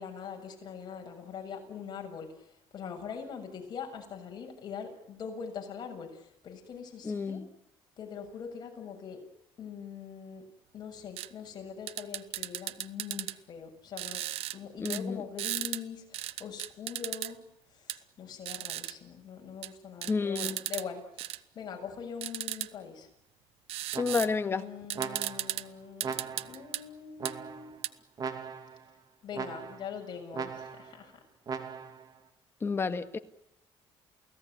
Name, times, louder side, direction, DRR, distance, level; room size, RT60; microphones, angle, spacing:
voice 1, 0.0-2.5 2.7-7.4 8.0-9.2 9.6-10.5 10.7-14.2 14.5-17.4 17.7-23.1 24.4-27.7 29.2-31.2, left 6 dB, 45° left, 7.2 m, -42 dB
voice 2, 7.0-7.5 14.8-15.2 20.0-20.6 24.0-24.7 32.6-33.2, left 4 dB, 25° left, 1.8 m, -30 dB
sound 1, 11.2-11.3 11.9-13.4 14.0-14.6 14.9-15.0 15.4-15.8 16.1-17.3 17.9-18.0 18.5-18.9 19.6-19.7 20.0-20.8 21.2-21.4 22.2-22.7 23.7-24.3 24.6-24.7 24.9-25.6 26.0-26.8 27.3-27.4 27.8-27.9, right 15 dB, 80° right, 1.0 m, -35 dB
sound 2, 23.9-24.5 24.9-25.6 26.0-26.7 27.2-27.8 28.2-28.8 29.3-29.9 30.3-31.0 31.5-32.1, right 5 dB, 40° right, 2.9 m, -39 dB
29.0 x 18.0 x 9.6 m
cardioid pair, 130°, 10 cm